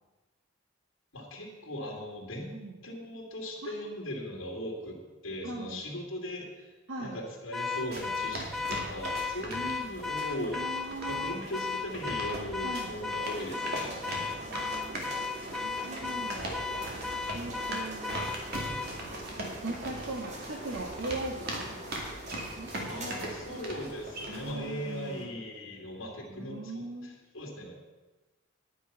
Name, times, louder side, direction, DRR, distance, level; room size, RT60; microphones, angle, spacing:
voice 1, 1.1-2.6 2.8-6.7 7.0-14.4 22.9-27.7, left 1 dB, 80° left, -2 dB, 2.5 m, -39 dB
voice 2, 5.4-5.8 6.9-7.2 10.5-11.4 12.6-12.9 15.5-16.5 17.3-18.2 19.4-21.8 22.6-22.7 23.2-23.6 24.3-25.3 26.3-27.1, right 2 dB, 75° right, -1 dB, 1.7 m, -39 dB
Car / Alarm, 7.5-18.9, left 4 dB, ahead, 0.5 m, -35 dB
sound 1, 7.8-24.5, right 1 dB, 50° right, 2.3 m, -40 dB
sound 2, 10.8-25.2, right 1 dB, 35° right, 2.0 m, -45 dB
10.5 x 9.1 x 5.8 m, 1.1 s
head